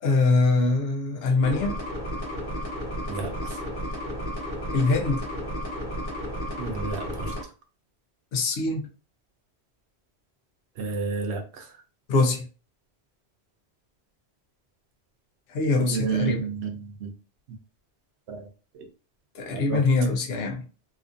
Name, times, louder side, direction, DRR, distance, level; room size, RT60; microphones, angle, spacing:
voice 1, 0.0-1.8 4.7-5.3 8.3-8.9 12.1-12.5 15.5-16.5 19.3-20.7, left 3 dB, 75° left, 0.8 m, -23 dB
sound 1, 1.4-7.4, equal, 55° left, 0.9 m, -33 dB
voice 2, 3.1-3.6 6.6-7.3 10.8-11.7 15.9-17.1 18.3-18.5 18.7-18.9 19.5-19.8, right 5 dB, 90° right, 0.9 m, -31 dB
2.8 x 2.5 x 2.5 m
omnidirectional pair, 1.1 m